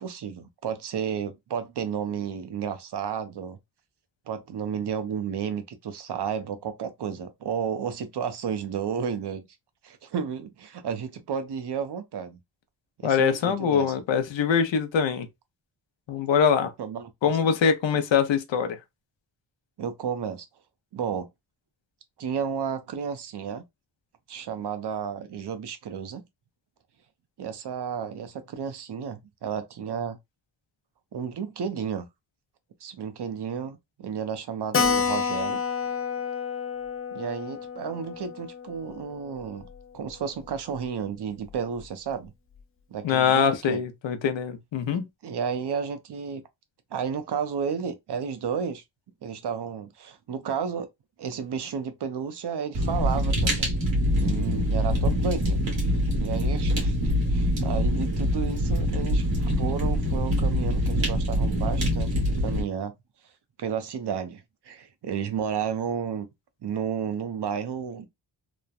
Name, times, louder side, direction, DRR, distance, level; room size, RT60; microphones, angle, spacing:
voice 1, 0.0-3.6 4.3-9.4 9.8-12.4 13.0-13.9 16.8-17.3 19.8-20.5 20.9-21.3 22.2-23.6 24.3-26.2 27.4-30.2 31.1-32.1 32.8-35.6 37.1-39.7 39.9-42.3 42.9-43.8 45.2-46.4 46.9-48.8 49.2-50.9 51.2-53.8 54.2-55.9 56.2-62.9 63.6-66.3 66.6-68.1, right 7 dB, 60° right, 0.6 m, -32 dB
voice 2, 13.0-15.3 16.1-16.7 17.2-18.8 43.0-45.0, left 7 dB, 75° left, 0.6 m, -23 dB
Keyboard (musical), 34.7-39.8 40.1-40.2 40.4-40.5 40.8-40.9 41.5-41.8, left 6 dB, 30° left, 0.4 m, -30 dB
Fire, 52.7-62.6, equal, 80° right, 1.4 m, -24 dB
3.1 x 2.1 x 2.3 m
wide cardioid pair, 120°, 45 cm